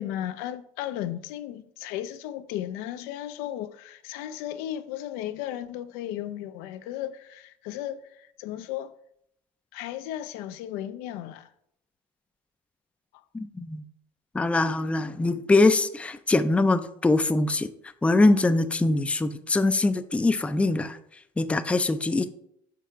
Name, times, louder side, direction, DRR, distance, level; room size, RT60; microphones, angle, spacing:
voice 1, 0.0-8.9 9.7-11.5 13.1-13.2, left 12 dB, 80° left, 0.4 m, -35 dB
voice 2, 13.3-13.8 14.3-17.7 18.0-21.0 21.4-22.3, left 2 dB, 10° left, 0.3 m, -23 dB
6.0 x 4.5 x 3.6 m
supercardioid pair, 100°, 15 cm